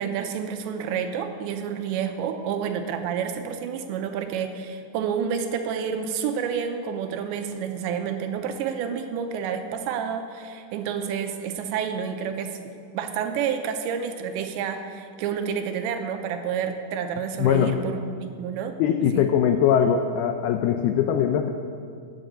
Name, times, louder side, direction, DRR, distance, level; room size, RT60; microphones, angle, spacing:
voice 1, 0.0-12.6 12.9-18.7 19.1-19.2, right 7 dB, 80° right, 6 dB, 3.0 m, -29 dB
voice 2, 17.4-17.8 18.8-21.5, left 8 dB, 90° left, 6 dB, 2.2 m, -21 dB
11.0 x 7.7 x 8.8 m, 2.2 s
omnidirectional pair, 5.2 m